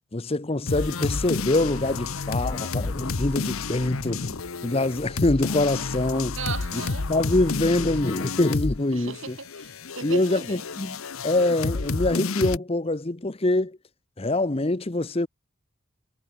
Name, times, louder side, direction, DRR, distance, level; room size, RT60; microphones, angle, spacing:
voice 1, 0.1-6.4 6.7-6.8 7.1-9.4 10.0-13.8 14.2-15.3, left 2 dB, 25° left, 0.8 m, -25 dB
sound 1, 0.7-8.9 9.1-12.6, left 4 dB, 80° left, 1.0 m, -30 dB
voice 2, 6.4-7.1 8.9-10.6, right 4 dB, 65° right, 5.9 m, -36 dB
head